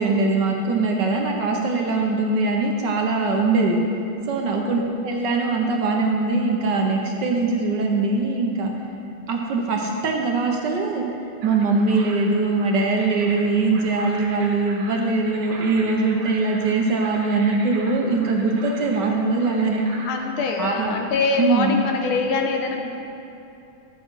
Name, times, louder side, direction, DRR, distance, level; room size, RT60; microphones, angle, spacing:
voice 1, 0.0-3.8 4.3-8.7 9.3-11.0 11.4-19.8 20.6-20.9 21.4-21.8, right 3 dB, 60° right, 1 dB, 1.3 m, -22 dB
voice 2, 4.4-5.0 20.1-22.8, left 4 dB, 75° left, 2 dB, 1.7 m, -24 dB
sound 1, 11.4-20.2, right 3 dB, 80° right, 2.0 m, -40 dB
12.5 x 7.6 x 4.7 m, 2.7 s
omnidirectional pair, 2.4 m